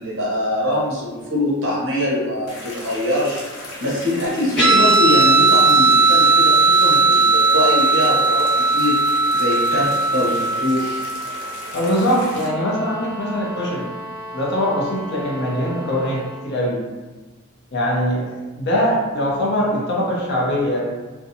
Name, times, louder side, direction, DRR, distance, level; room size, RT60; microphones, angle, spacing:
voice 1, 0.0-9.0 9.3-11.0, left 1 dB, 60° right, -6 dB, 0.8 m, -23 dB
sound 1, 2.5-12.5, left 1 dB, 85° left, 0.7 m, -36 dB
Guitar, 4.6-11.5, right 2 dB, 5° left, 1.2 m, -16 dB
voice 2, 11.7-13.9 14.3-16.8 17.7-20.9, equal, 50° left, -4 dB, 0.6 m, -22 dB
sound 2, 11.8-16.5, equal, 25° right, 0.3 m, -35 dB
2.6 x 2.2 x 2.6 m, 1.2 s
head